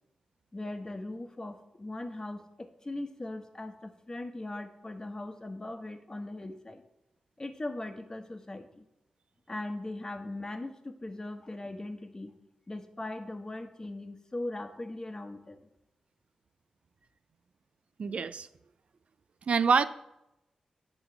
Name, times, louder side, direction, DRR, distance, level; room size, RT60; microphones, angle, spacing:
voice 1, 0.5-6.8 7.4-8.8 9.5-12.3 12.7-15.6, left 2 dB, 30° left, 6 dB, 1.1 m, -39 dB
voice 2, 18.0-18.5 19.5-19.8, right 5 dB, 65° right, 12 dB, 0.4 m, -25 dB
8.7 x 3.9 x 6.9 m, 0.89 s
cardioid pair, 45°, 2 cm